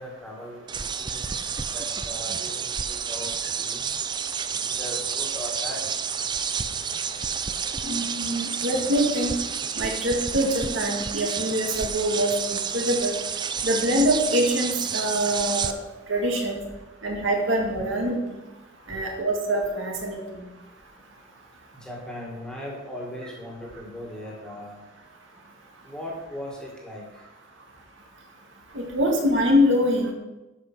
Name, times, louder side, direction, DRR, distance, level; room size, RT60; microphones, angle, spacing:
voice 1, 0.0-3.9 4.6-5.8 21.7-24.8 25.8-27.2, left 1 dB, 5° left, -2 dB, 2.1 m, -39 dB
sound 1, 0.7-15.7, right 6 dB, 20° right, 0.4 m, -30 dB
voice 2, 7.8-9.3 9.8-13.1 13.6-15.7 16.1-16.6 17.0-18.2 18.9-20.4 28.7-30.1, equal, 65° right, 0 dB, 2.1 m, -24 dB
11.5 x 5.8 x 6.2 m, 1.1 s
head